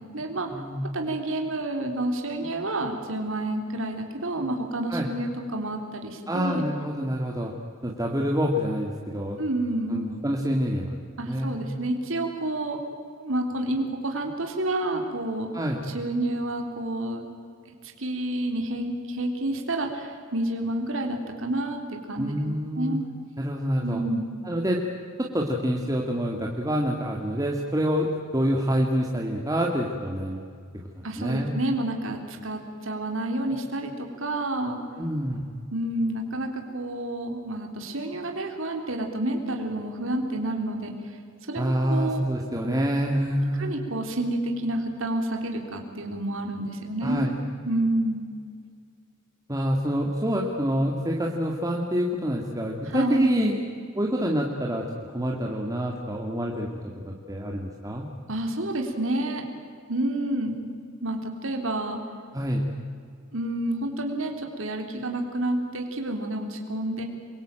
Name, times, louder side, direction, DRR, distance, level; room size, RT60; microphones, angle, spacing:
voice 1, 0.0-0.5 0.9-6.7 9.4-10.1 11.2-12.8 13.2-15.5 15.9-17.3 17.7-22.5 22.8-23.0 23.8-24.3 31.0-34.8 35.7-41.2 41.5-42.3 43.6-47.3 47.7-48.3 52.8-53.3 58.3-59.5 59.9-60.6 61.0-62.0 63.3-67.0, right 1 dB, 65° right, 3 dB, 3.6 m, -29 dB
voice 2, 0.5-0.8 4.9-5.1 6.3-7.5 7.8-9.4 9.9-10.9 11.3-11.6 15.5-15.8 22.2-23.0 23.4-24.0 24.4-24.8 25.2-28.1 28.3-30.5 31.2-31.5 35.0-35.5 41.6-43.8 47.0-47.3 49.5-53.6 54.0-54.8 55.1-56.7 57.1-58.1 62.3-62.6, equal, 15° right, -1 dB, 2.2 m, -26 dB
27.5 x 23.0 x 9.0 m, 2.2 s
head